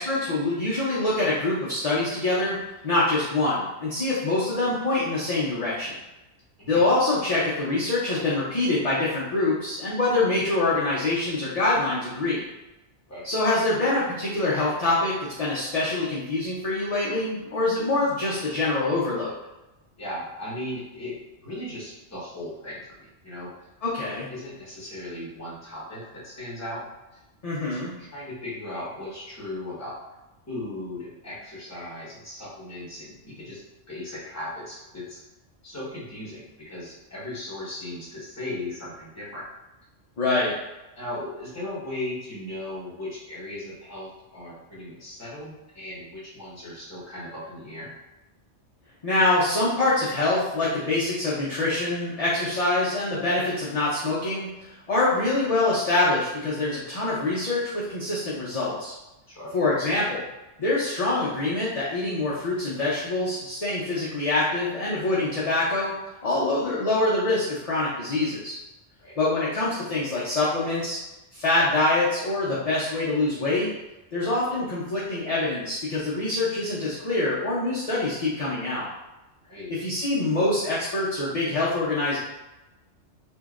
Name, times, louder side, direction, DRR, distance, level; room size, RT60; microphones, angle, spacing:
voice 1, 0.0-5.9 6.7-12.4 13.2-19.4 23.8-24.3 27.4-27.9 40.2-40.5 49.0-54.5 54.9-58.9 59.5-60.2 60.6-66.0 66.2-68.5 69.2-71.0 71.3-73.7 74.1-78.9 79.7-82.2, left 2 dB, 45° left, -7 dB, 0.5 m, -25 dB
voice 2, 20.0-21.2 21.4-23.5 24.0-26.8 27.1-27.2 27.6-30.0 30.5-33.6 33.9-35.2 35.6-39.4 40.9-47.9 59.3-59.5 69.0-69.2 79.4-79.7, left 1 dB, 15° left, -7 dB, 0.9 m, -37 dB
3.0 x 2.7 x 2.4 m, 0.99 s
omnidirectional pair, 1.2 m